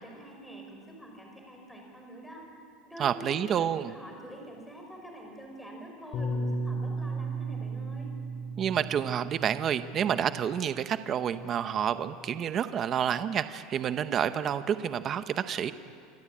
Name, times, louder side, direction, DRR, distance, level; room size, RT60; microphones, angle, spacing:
voice 1, 0.0-2.4 2.9-8.1, right 1 dB, ahead, 0 dB, 5.3 m, -46 dB
voice 2, 3.0-3.9 8.6-15.7, right 9 dB, 25° right, 11 dB, 0.8 m, -29 dB
Bass guitar, 6.1-10.6 11.4-12.4, right 2 dB, 30° left, 3.6 m, -35 dB
27.5 x 25.0 x 8.6 m, 2.3 s
supercardioid pair, 175°, 0 cm